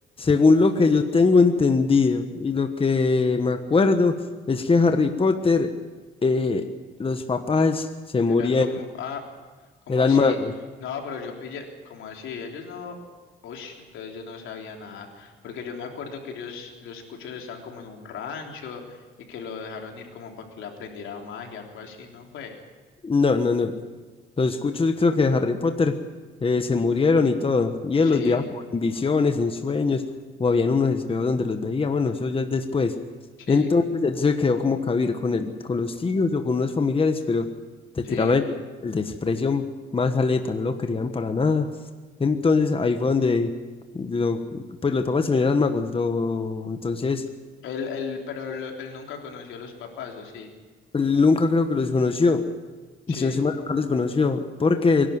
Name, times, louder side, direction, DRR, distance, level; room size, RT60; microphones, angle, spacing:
voice 1, 0.2-4.2 4.5-5.7 6.2-6.7 7.0-7.9 8.1-8.7 9.9-10.5 23.0-23.7 24.4-26.0 26.4-28.4 28.7-30.0 30.4-33.0 33.5-37.5 37.9-38.4 38.8-39.7 39.9-41.7 42.2-43.5 43.9-47.2 50.9-52.5 53.1-55.1, left 4 dB, 25° left, 7 dB, 1.3 m, -22 dB
voice 2, 8.3-9.3 9.9-10.4 10.8-13.0 13.4-22.6 28.0-28.4 33.4-33.7 35.9-36.0 38.0-38.4 47.6-50.5 53.1-53.4, left 6 dB, 80° left, 2 dB, 3.5 m, -36 dB
23.5 x 11.5 x 9.7 m, 1.4 s
cardioid pair, 90°, 20 cm